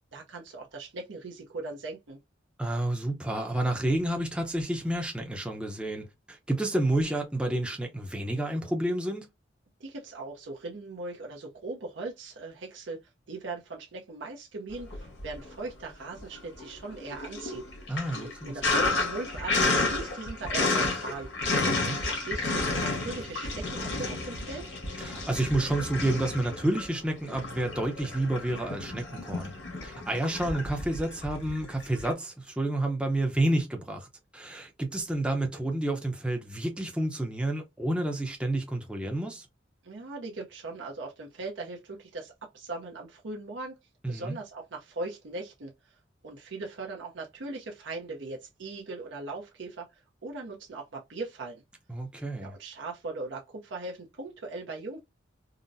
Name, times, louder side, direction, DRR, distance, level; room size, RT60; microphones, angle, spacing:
voice 1, 0.1-2.2 9.8-13.0 13.3-17.6 18.2-21.3 21.9-24.7 39.8-43.8 44.1-45.9 46.2-51.6 52.4-55.0, right 3 dB, 75° right, 0.7 m, -39 dB
voice 2, 2.6-9.3 17.9-18.5 21.6-22.0 25.0-29.5 29.8-34.1 34.3-39.5 44.0-44.4 51.9-52.5, right 1 dB, 5° right, 0.5 m, -30 dB
Sink (filling or washing), 14.8-15.7 16.0-32.1, left 3 dB, 80° left, 1.4 m, -31 dB
3.8 x 2.0 x 2.5 m
head